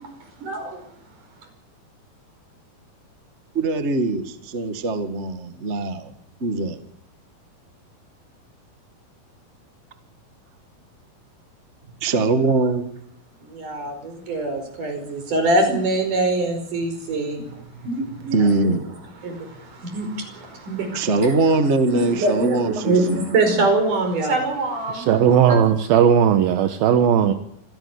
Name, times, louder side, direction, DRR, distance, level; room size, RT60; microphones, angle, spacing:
voice 1, 0.4-0.8 13.4-18.5 19.2-21.1 21.9-25.1 25.5-25.6, right 2 dB, 55° right, 6.6 m, -24 dB
voice 2, 3.5-6.1 6.4-6.8 12.0-12.8 17.7-17.8 18.1-18.9 20.9-23.3, right 3 dB, 30° right, 1.4 m, -22 dB
voice 3, 24.9-27.3, right 8 dB, 75° right, 3.0 m, -17 dB
26.0 x 16.5 x 8.3 m
omnidirectional pair, 4.3 m